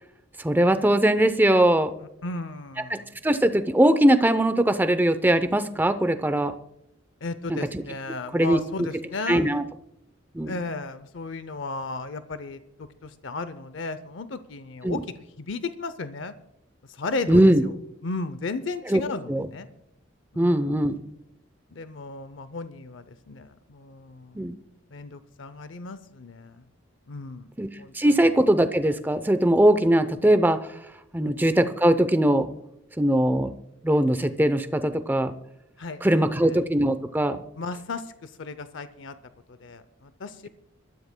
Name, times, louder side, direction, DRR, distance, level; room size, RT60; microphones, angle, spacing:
voice 1, 0.4-1.9 2.9-6.5 7.5-7.6 8.3-8.9 9.3-9.6 10.3-10.6 14.8-15.0 17.3-17.6 18.9-19.0 19.3-19.5 20.4-21.0 24.4-24.5 27.6-27.7 27.9-30.6 31.1-32.5 33.0-33.5 33.8-35.3 36.0-37.4, right 1 dB, 10° right, 10 dB, 0.6 m, -21 dB
voice 2, 2.0-3.1 7.2-9.5 10.5-15.0 15.4-16.3 16.9-17.7 18.0-19.7 20.3-20.8 21.7-24.4 24.9-26.6 27.1-27.5 27.8-28.3 31.2-31.3 35.8-36.6 37.6-39.2 39.5-40.5, left 3 dB, 70° left, 13 dB, 0.6 m, -35 dB
26.0 x 13.0 x 2.2 m, 0.82 s
head